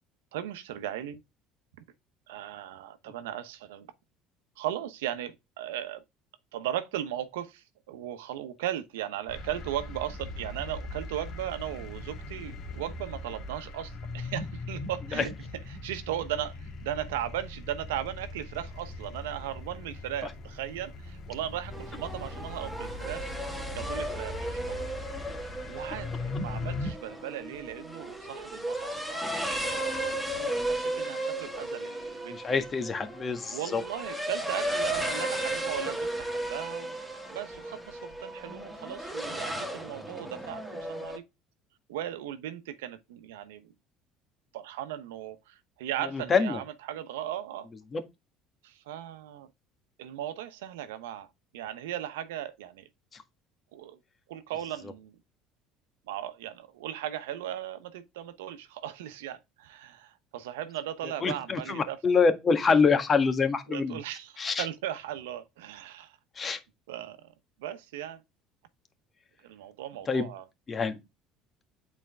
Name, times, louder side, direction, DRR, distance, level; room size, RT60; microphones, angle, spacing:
voice 1, 0.3-1.2 1.8-1.9 2.3-3.9 4.6-6.0 6.5-15.3 15.7-23.3 23.7-24.9 25.7-26.1 26.4-32.6 33.5-37.0 37.3-41.2 41.9-43.7 44.5-47.7 48.6-49.5 50.0-51.3 51.5-52.9 53.7-54.0 54.3-55.2 56.1-62.0 63.7-66.2 66.9-67.3 67.6-68.2 69.4-70.4, right 11 dB, 85° right, 1.0 m, -37 dB
sound 1, 9.3-26.9, left 2 dB, 55° left, 1.7 m, -40 dB
sound 2, 21.7-41.2, right 1 dB, ahead, 2.1 m, -35 dB
voice 2, 32.3-33.8 46.0-46.6 47.9-48.0 53.1-53.2 61.2-64.0 64.4-64.6 66.3-66.6 70.1-70.3 70.7-71.0, left 5 dB, 35° left, 1.7 m, -26 dB
8.5 x 4.4 x 3.5 m
supercardioid pair, 80°, 0 cm